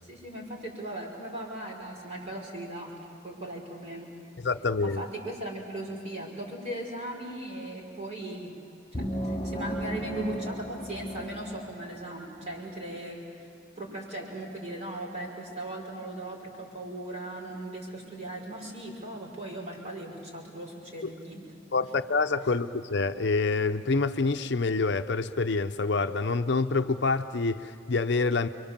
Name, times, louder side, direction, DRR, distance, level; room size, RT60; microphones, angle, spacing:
voice 1, 0.0-2.9 3.2-4.1 4.8-8.5 8.9-13.5 13.8-21.5, right 1 dB, 35° right, -1 dB, 5.9 m, -38 dB
voice 2, 4.4-5.0 21.0-21.1 21.7-28.5, left 3 dB, 60° left, 9 dB, 0.7 m, -27 dB
sound 1, 8.9-12.5, equal, 20° left, 1.1 m, -35 dB
29.5 x 23.5 x 7.4 m, 2.5 s
head